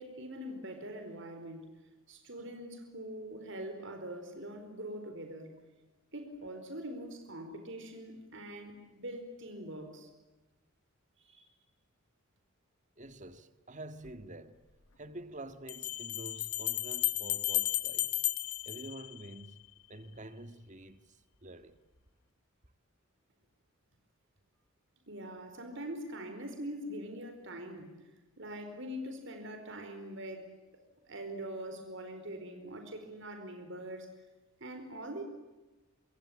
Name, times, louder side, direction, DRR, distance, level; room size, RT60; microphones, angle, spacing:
voice 1, 0.0-1.7 2.1-5.6 6.1-10.1 11.2-11.5 25.1-28.0 28.4-30.5 31.1-34.1 34.6-35.2, right 1 dB, 60° right, 4.6 m, -43 dB
voice 2, 13.0-14.6 15.0-18.2 18.7-19.6 19.9-21.8, right 1 dB, 35° right, 1.8 m, -48 dB
Bell, 14.1-14.2 15.7-19.6, left 16 dB, 85° left, 1.2 m, -34 dB
27.0 x 25.0 x 8.8 m
head